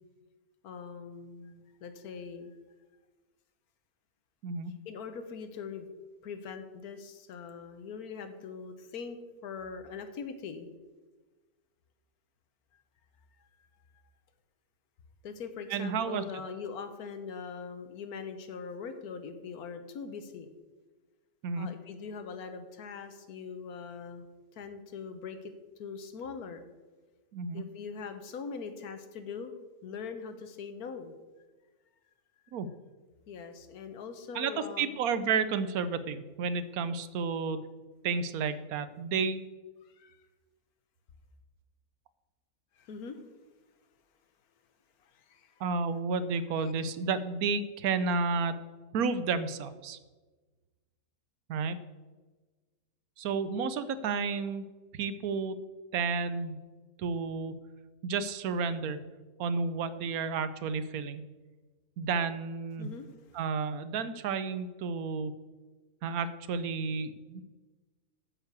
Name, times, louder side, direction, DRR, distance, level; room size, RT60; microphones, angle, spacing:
voice 1, 0.6-2.6 4.8-5.9 6.2-9.2 9.4-10.7 15.2-20.5 21.6-24.3 24.5-25.5 25.8-26.6 27.5-29.5 29.8-31.1 33.3-35.0 39.8-40.2 42.8-43.2 45.0-45.6 62.8-63.4, left 5 dB, 70° left, 8 dB, 1.4 m, -42 dB
voice 2, 15.7-16.2 21.4-21.7 27.3-27.6 32.5-32.7 34.3-34.5 34.8-37.6 38.0-39.4 45.6-48.5 48.9-50.0 51.5-51.8 53.2-54.7 54.9-55.6 55.9-56.6 57.0-57.5 58.0-59.0 59.4-61.2 62.0-62.9 63.3-65.4 66.0-67.4, right 5 dB, 75° right, 13 dB, 1.1 m, -31 dB
9.4 x 5.7 x 8.2 m, 1.3 s
omnidirectional pair, 1.6 m